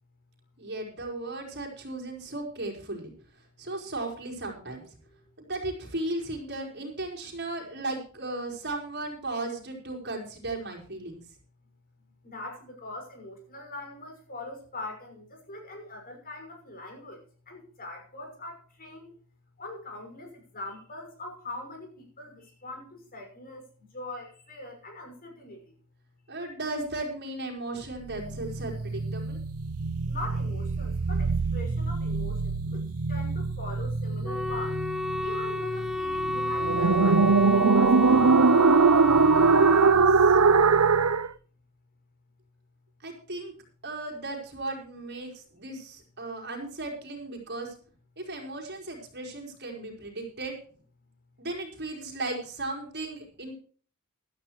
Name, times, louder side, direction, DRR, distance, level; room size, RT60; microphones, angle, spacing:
voice 1, 0.6-4.8 5.4-11.2 26.3-29.4 39.7-40.4 43.0-43.5 43.8-47.7 48.2-50.6 51.4-53.5, right 2 dB, 50° right, 1 dB, 4.8 m, -36 dB
voice 2, 12.2-17.2 17.5-19.1 19.6-23.6 23.9-25.6 30.1-32.8 33.1-34.8 35.2-38.2, left 2 dB, 40° left, 3 dB, 6.0 m, -42 dB
sound 1, 28.0-41.3, right 4 dB, 85° right, 0.7 m, -23 dB
Wind instrument woodwind instrument, 34.2-40.0, left 1 dB, ahead, 0.5 m, -30 dB
16.0 x 13.0 x 3.2 m, 0.42 s
head